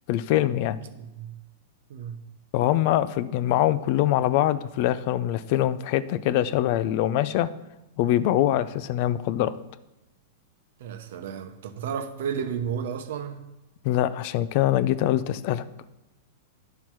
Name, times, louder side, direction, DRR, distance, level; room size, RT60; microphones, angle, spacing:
voice 1, 0.1-0.8 2.5-7.5 8.0-9.5 13.8-15.6, left 13 dB, 50° left, 15 dB, 0.5 m, -23 dB
voice 2, 0.8-1.4 1.9-2.3 10.8-13.4, right 7 dB, 70° right, 9 dB, 0.9 m, -33 dB
10.5 x 5.8 x 4.7 m, 0.96 s
hypercardioid pair, 140°, 0 cm